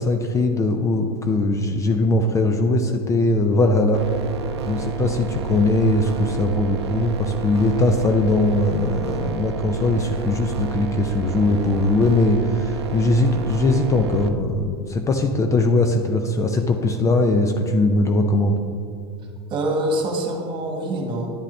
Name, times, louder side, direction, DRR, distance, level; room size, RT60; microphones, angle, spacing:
voice 1, 0.0-4.0 4.6-18.6, left 2 dB, 25° left, 5 dB, 0.6 m, -20 dB
sound 1, 3.9-14.3, right 5 dB, 85° right, 0.5 m, -30 dB
voice 2, 19.5-21.4, right 1 dB, 35° right, 2 dB, 1.6 m, -25 dB
10.0 x 7.4 x 3.3 m, 2.4 s
hypercardioid pair, 105°, 13 cm